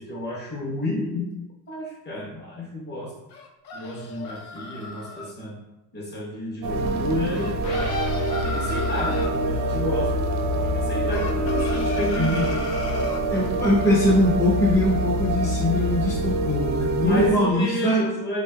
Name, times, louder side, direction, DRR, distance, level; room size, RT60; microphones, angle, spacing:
voice 1, 0.0-1.3 1.7-3.1 3.7-5.6 5.9-7.8 8.4-10.1 10.8-12.6 16.9-18.4, left 1 dB, 20° left, -4 dB, 1.1 m, -30 dB
sound 1, 3.3-5.3 7.3-9.4 11.1-13.3, left 3 dB, 60° left, 0.5 m, -35 dB
sound 2, 6.6-17.3, right 1 dB, 40° right, 0.4 m, -25 dB
sound 3, 7.6-9.0, left 3 dB, 80° left, 1.1 m, -34 dB
voice 2, 13.3-18.0, left 1 dB, 5° left, -7 dB, 0.6 m, -22 dB
3.4 x 3.2 x 2.2 m, 0.94 s
cardioid pair, 120°, 45 cm